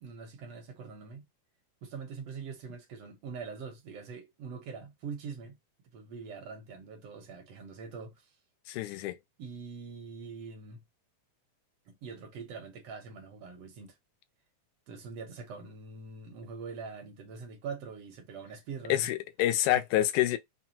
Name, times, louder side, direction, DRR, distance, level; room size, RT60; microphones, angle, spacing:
voice 1, 0.0-1.3 1.8-5.6 5.9-8.3 9.4-10.8 11.8-13.9 14.9-19.1 19.7-19.8, right 5 dB, 65° right, 1.6 m, -43 dB
voice 2, 8.7-9.2 18.9-20.4, left 14 dB, 80° left, 2.0 m, -27 dB
5.8 x 2.2 x 2.8 m
omnidirectional pair, 3.6 m